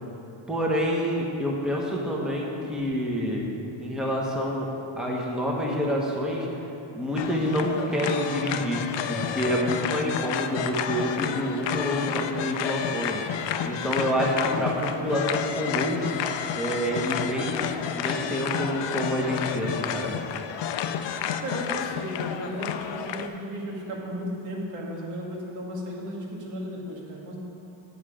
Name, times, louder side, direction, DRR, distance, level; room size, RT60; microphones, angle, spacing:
voice 1, 0.5-3.4 3.8-4.7 4.9-6.5 6.9-8.8 9.1-13.2 13.6-16.0 16.5-17.7 18.0-20.2, equal, ahead, -3 dB, 0.9 m, -27 dB
sound 1, 7.2-23.3, left 8 dB, 60° left, 0.5 m, -30 dB
voice 2, 21.4-27.4, equal, 90° right, -3 dB, 2.0 m, -35 dB
9.6 x 7.0 x 4.9 m, 2.9 s
wide cardioid pair, 175°, 50 cm